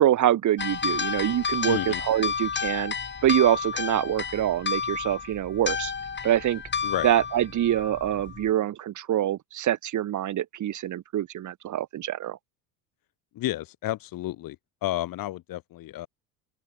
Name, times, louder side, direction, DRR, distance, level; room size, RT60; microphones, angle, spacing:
voice 1, 0.0-2.9 3.2-5.9 6.2-6.6 7.0-12.4, right 12 dB, 45° right, 3.5 m, -25 dB
sound 1, 0.6-8.5, left 6 dB, 25° left, 7.3 m, -31 dB
voice 2, 1.7-2.0 6.8-7.1 13.3-14.6 14.8-16.1, left 15 dB, 55° left, 4.4 m, -31 dB
open air
supercardioid pair, 110°, 40 cm